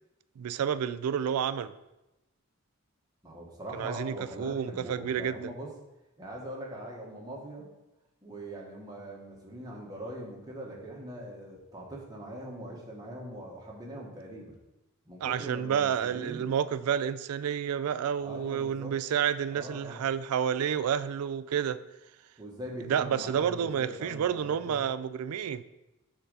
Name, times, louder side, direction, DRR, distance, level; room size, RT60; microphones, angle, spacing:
voice 1, 0.4-1.7 3.8-5.4 15.2-21.8 22.9-25.6, right 8 dB, 85° right, 0.3 m, -30 dB
voice 2, 3.2-5.7 6.2-7.7 8.2-14.6 15.0-16.5 18.2-18.9 19.5-20.0 22.4-24.8, right 1 dB, 20° right, 1.4 m, -42 dB
6.8 x 3.8 x 5.3 m
head